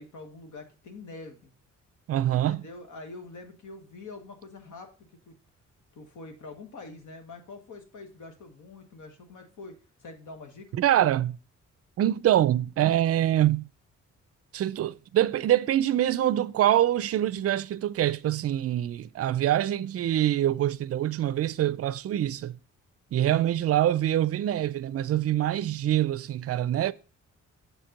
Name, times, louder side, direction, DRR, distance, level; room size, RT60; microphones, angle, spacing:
voice 1, 0.0-1.5 2.3-4.9 5.3-5.4 5.9-10.7 23.3-23.5, left 3 dB, 75° left, 1.6 m, -45 dB
voice 2, 2.1-2.6 10.7-11.4 12.0-13.7 14.5-22.5 23.1-26.9, right 12 dB, 50° right, 0.4 m, -25 dB
6.8 x 4.4 x 5.1 m
cardioid pair, 95°, 31 cm